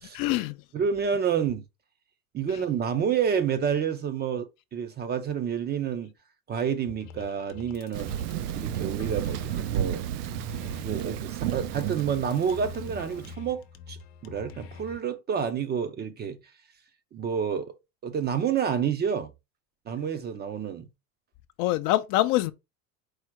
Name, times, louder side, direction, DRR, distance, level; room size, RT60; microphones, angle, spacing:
voice 1, 0.1-0.6 21.6-22.5, left 16 dB, 55° left, 0.5 m, -24 dB
voice 2, 0.7-1.6 2.3-6.1 6.5-8.1 8.5-10.0 10.8-13.6 13.9-14.0 14.2-16.4 17.1-17.7 18.0-19.3 19.9-20.9, right 7 dB, 25° right, 0.4 m, -29 dB
sound 1, 7.0-15.0, left 6 dB, 80° left, 0.8 m, -45 dB
Thunder, 7.9-13.3, right 10 dB, 85° right, 0.5 m, -32 dB
4.6 x 2.0 x 4.4 m
supercardioid pair, 115°, 43 cm